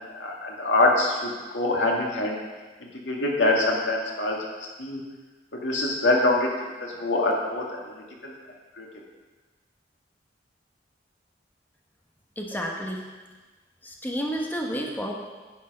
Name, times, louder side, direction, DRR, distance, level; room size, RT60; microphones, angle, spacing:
voice 1, 0.0-2.4 2.8-4.4 4.8-5.1 5.5-6.5 6.8-8.3 8.8-8.9, left 2 dB, 85° left, -1 dB, 2.2 m, -25 dB
voice 2, 12.4-13.0 13.8-15.1, equal, 10° left, 0 dB, 1.1 m, -30 dB
10.5 x 8.4 x 5.5 m, 1.3 s
head